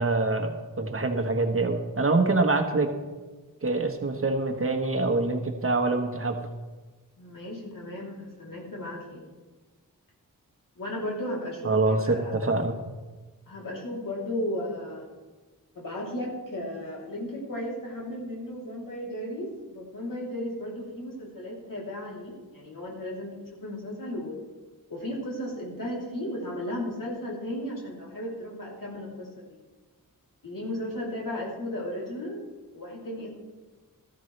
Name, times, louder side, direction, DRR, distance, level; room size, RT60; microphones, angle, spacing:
voice 1, 0.0-2.9 3.6-6.4 11.6-12.7, right 3 dB, 40° right, 4 dB, 1.3 m, -25 dB
voice 2, 7.2-9.2 10.8-12.5 13.5-15.1 15.8-24.4 24.9-29.6 30.4-32.4 32.7-33.3, left 1 dB, 70° left, -3 dB, 3.3 m, -35 dB
14.0 x 13.5 x 3.3 m, 1.3 s
wide cardioid pair, 115°, 34 cm